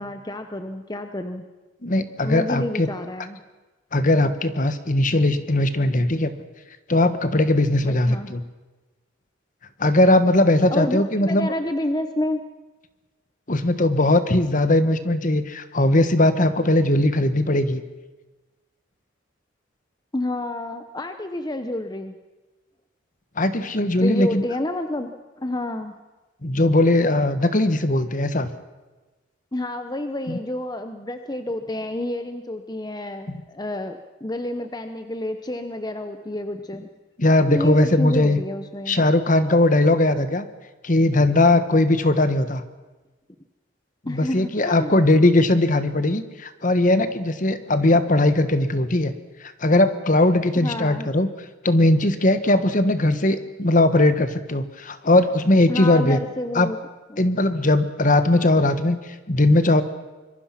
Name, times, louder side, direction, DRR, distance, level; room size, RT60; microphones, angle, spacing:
voice 1, 0.0-1.4 2.2-3.4 8.1-8.3 10.7-12.4 20.1-22.2 24.0-25.9 29.5-36.9 37.5-39.0 44.1-45.0 50.5-51.1 53.1-53.2 55.7-56.8 57.1-57.3, left 1 dB, 20° left, 7 dB, 0.9 m, -29 dB
voice 2, 1.8-2.9 3.9-6.3 6.9-8.4 9.8-11.5 13.5-17.8 23.4-24.4 26.4-28.5 30.3-30.4 33.3-33.4 37.2-38.4 38.9-40.4 40.8-42.6 44.0-49.1 49.6-51.3 51.6-56.2 56.5-56.7 57.2-59.0 59.3-59.8, left 1 dB, 40° left, 11 dB, 1.4 m, -19 dB
25.0 x 22.5 x 5.9 m, 1.2 s
head